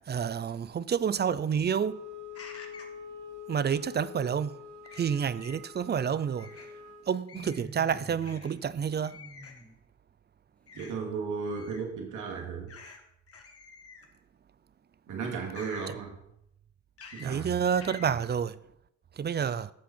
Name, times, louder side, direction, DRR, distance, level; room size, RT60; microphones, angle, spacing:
voice 1, 0.1-2.0 3.5-4.6 5.0-6.5 7.1-9.2 17.2-18.5 19.2-19.7, right 7 dB, 35° right, 0.5 m, -29 dB
Wind instrument woodwind instrument, 1.8-7.1, left 6 dB, 65° right, 3.5 m, -45 dB
sound 1, 2.3-3.0 4.8-5.6 6.4-6.7 7.3-7.7 8.2-8.5 9.0-9.6 10.7-10.9 11.5-11.9 12.7-13.0 13.3-14.2 15.5-15.9 17.0-17.3 17.8-18.1, left 5 dB, 50° left, 1.8 m, -48 dB
sound 2, 7.3-8.5 8.7-9.8, equal, 5° left, 1.2 m, -48 dB
voice 2, 10.7-12.7 15.1-16.1 17.1-17.5, right 5 dB, 85° right, 2.5 m, -35 dB
11.5 x 7.4 x 4.4 m
cardioid pair, 90°, 30 cm